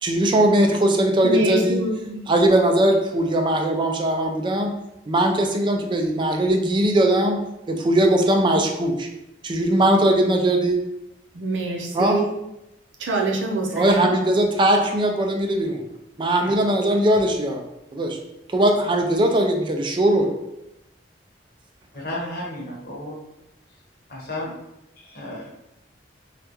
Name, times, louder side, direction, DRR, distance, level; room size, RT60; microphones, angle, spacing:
voice 1, 0.0-1.8 2.3-4.7 5.1-7.4 7.7-9.1 9.4-10.8 11.9-12.2 13.7-15.8 16.2-17.6 17.9-18.2 18.5-20.3, right 1 dB, 25° right, 3 dB, 0.4 m, -20 dB
voice 2, 1.2-2.3 11.3-12.3 13.0-14.1, right 2 dB, 90° right, 0 dB, 0.6 m, -25 dB
voice 3, 21.9-23.2 24.1-24.5 25.0-25.5, left 1 dB, 55° left, -3 dB, 0.9 m, -33 dB
3.3 x 2.4 x 2.9 m, 0.88 s
head